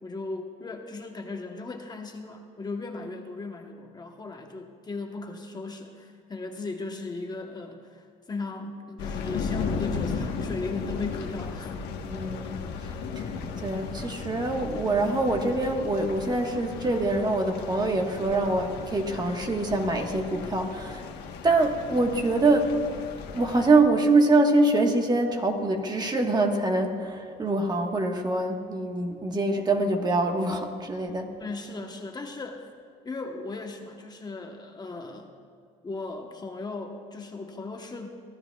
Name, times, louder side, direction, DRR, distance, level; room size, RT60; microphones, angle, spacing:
voice 1, 0.0-11.7 31.4-32.7 33.0-35.3 35.8-38.1, left 3 dB, 25° left, 3 dB, 1.0 m, -37 dB
sound 1, 9.0-23.7, left 5 dB, 85° left, 1.2 m, -35 dB
voice 2, 12.0-12.6 13.2-21.1 21.4-22.7 23.3-31.3, right 2 dB, 25° right, 3 dB, 1.3 m, -24 dB
25.0 x 13.0 x 2.3 m, 2.4 s
cardioid pair, 110°, 17 cm